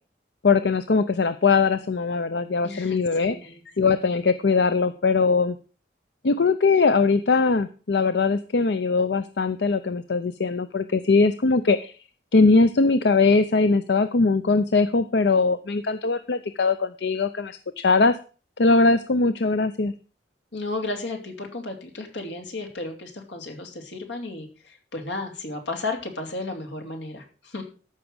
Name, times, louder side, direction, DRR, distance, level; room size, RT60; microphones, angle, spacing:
voice 1, 0.4-5.6 6.2-12.0 12.3-18.2 18.6-19.9, left 4 dB, 65° left, 12 dB, 0.6 m, -21 dB
voice 2, 2.6-3.6 20.5-27.6, left 2 dB, 85° left, 4 dB, 2.8 m, -33 dB
14.0 x 6.0 x 6.3 m, 0.38 s
head